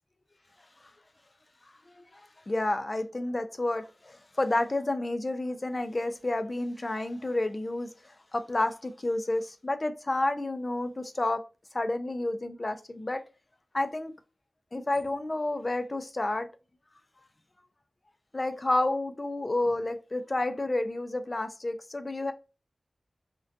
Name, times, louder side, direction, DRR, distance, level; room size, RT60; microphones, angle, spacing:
voice 1, 2.5-7.9 8.3-11.4 11.7-13.2 13.7-14.1 14.7-16.5 18.3-22.3, left 2 dB, 35° left, 0.3 m, -30 dB
2.4 x 2.2 x 2.5 m
wide cardioid pair, 95°, 0 cm